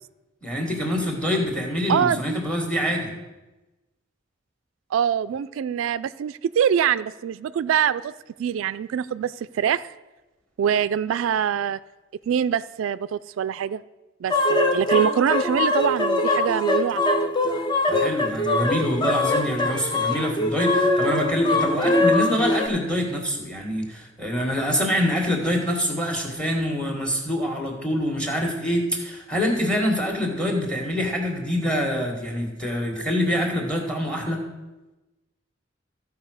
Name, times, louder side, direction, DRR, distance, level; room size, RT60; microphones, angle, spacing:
voice 1, 0.4-3.1 17.9-34.4, equal, 5° left, 2 dB, 1.7 m, -25 dB
voice 2, 1.9-2.4 4.9-8.1 8.4-9.8 10.6-11.8 12.3-13.8 14.2-17.3, right 8 dB, 85° right, 16 dB, 0.3 m, -24 dB
sound 1, 14.3-22.7, left 2 dB, 25° left, 0.7 m, -22 dB
14.0 x 4.8 x 6.4 m, 1.1 s
head